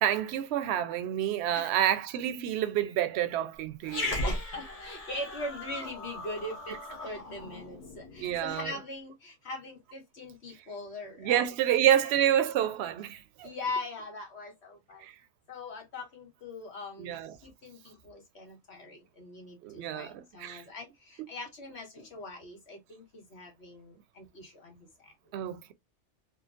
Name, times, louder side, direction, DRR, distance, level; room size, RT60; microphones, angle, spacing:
voice 1, 0.0-4.3 8.2-8.7 11.2-13.5 15.0-15.1 17.0-17.4 19.6-20.6 25.3-25.7, right 11 dB, 70° right, 0.8 m, -28 dB
Growling, 3.8-8.5, left 1 dB, 35° left, 1.0 m, -37 dB
voice 2, 4.0-6.8 7.0-12.1 13.4-15.0 15.5-24.9, left 2 dB, 65° left, 1.6 m, -41 dB
3.8 x 2.3 x 2.4 m
omnidirectional pair, 1.2 m